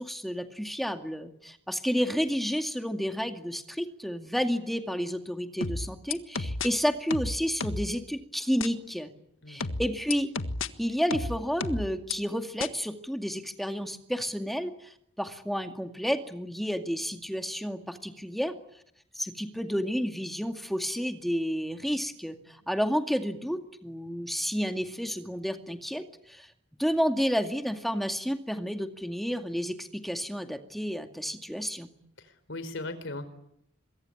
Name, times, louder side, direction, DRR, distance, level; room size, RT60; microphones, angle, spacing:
voice 1, 0.0-9.1 9.5-10.3 10.8-18.5 19.2-26.5 26.8-31.9, equal, ahead, 5 dB, 2.2 m, -31 dB
sound 1, 5.6-6.7 7.1-7.9 8.6-8.7 9.6-10.7 11.1-12.1 12.6-12.7, left 3 dB, 85° left, 1.6 m, -32 dB
voice 2, 32.2-33.3, left 2 dB, 65° left, 12 dB, 4.5 m, -38 dB
26.0 x 23.0 x 9.9 m, 0.74 s
head